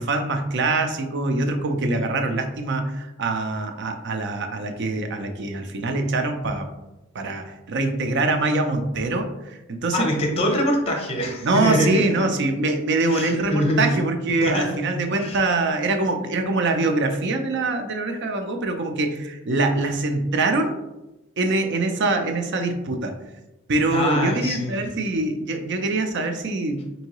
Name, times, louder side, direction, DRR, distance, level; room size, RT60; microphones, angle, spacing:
voice 1, 0.0-6.7 7.1-10.1 11.4-20.8 21.4-23.1 23.7-27.1, right 2 dB, 55° right, 6 dB, 0.5 m, -24 dB
voice 2, 9.9-12.0 13.1-14.0 14.4-14.8 15.2-15.4 23.9-24.8, left 1 dB, 30° left, 1 dB, 0.7 m, -24 dB
4.6 x 2.7 x 2.9 m, 0.98 s
head